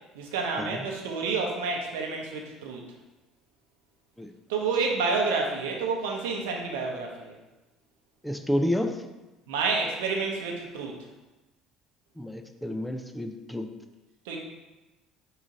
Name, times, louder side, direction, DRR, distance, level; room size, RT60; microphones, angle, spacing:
voice 1, 0.1-2.8 4.5-7.3 9.5-11.0 14.2-14.4, right 4 dB, 70° right, 0 dB, 0.7 m, -29 dB
voice 2, 8.2-9.0 12.2-13.7, left 1 dB, 5° left, 6 dB, 0.4 m, -30 dB
4.8 x 2.5 x 3.8 m, 1.1 s
figure-of-eight pair, 60°, 0 cm